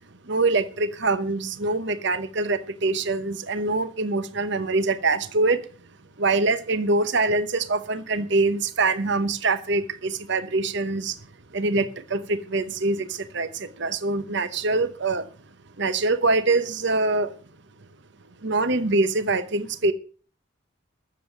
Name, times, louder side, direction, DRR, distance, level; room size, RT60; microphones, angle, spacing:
voice 1, 0.3-5.6 6.2-11.2 11.5-15.3 15.8-17.3 18.4-19.9, right 3 dB, 60° right, 0.9 m, -24 dB
14.5 x 7.4 x 7.2 m
head